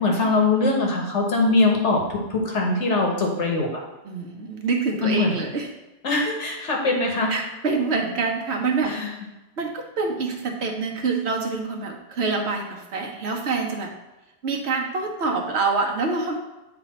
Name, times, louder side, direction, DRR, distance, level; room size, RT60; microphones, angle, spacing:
voice 1, 0.0-3.7 5.0-5.4 6.0-7.3 8.8-9.1, left 3 dB, 85° left, 0 dB, 1.5 m, -22 dB
voice 2, 4.0-5.7 7.3-8.9 9.6-13.9 14.4-16.4, right 4 dB, 70° right, 2 dB, 1.2 m, -26 dB
9.5 x 3.3 x 4.2 m, 1.0 s
omnidirectional pair, 1.2 m